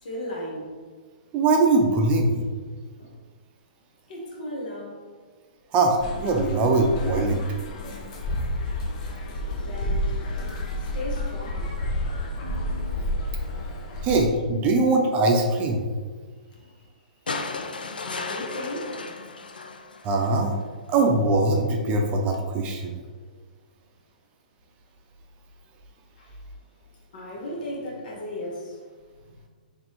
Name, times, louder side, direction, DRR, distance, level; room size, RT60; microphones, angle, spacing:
voice 1, 0.0-0.7 3.0-3.2 4.1-5.1 9.3-12.3 13.2-13.7 16.5-16.8 18.0-19.0 22.8-23.2 26.2-26.4 27.1-28.8 29.2-29.5, left 1 dB, 65° left, -2 dB, 1.3 m, -37 dB
voice 2, 1.3-2.4 5.7-7.4 14.0-15.8 20.0-20.6 20.9-22.9, right 2 dB, 30° right, 2 dB, 0.6 m, -21 dB
sound 1, 6.0-14.2, left 1 dB, 50° left, 0.7 m, -30 dB
sound 2, 17.3-20.6 21.9-22.0, left 4 dB, 85° left, 0.4 m, -35 dB
3.9 x 3.3 x 3.1 m, 1.5 s
hypercardioid pair, 120°, 5 cm